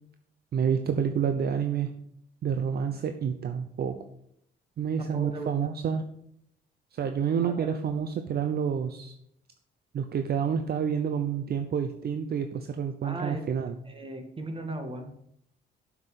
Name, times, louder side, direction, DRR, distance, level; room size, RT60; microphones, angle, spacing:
voice 1, 0.5-1.9 2.4-4.0 4.8-6.0 6.9-9.1 9.9-13.8, right 7 dB, 50° right, 8 dB, 0.7 m, -28 dB
voice 2, 5.0-5.5 7.4-7.7 13.0-13.6 13.9-15.2, right 2 dB, 25° right, 5 dB, 2.0 m, -37 dB
7.6 x 5.9 x 7.5 m, 0.73 s
cardioid pair, 90°, 20 cm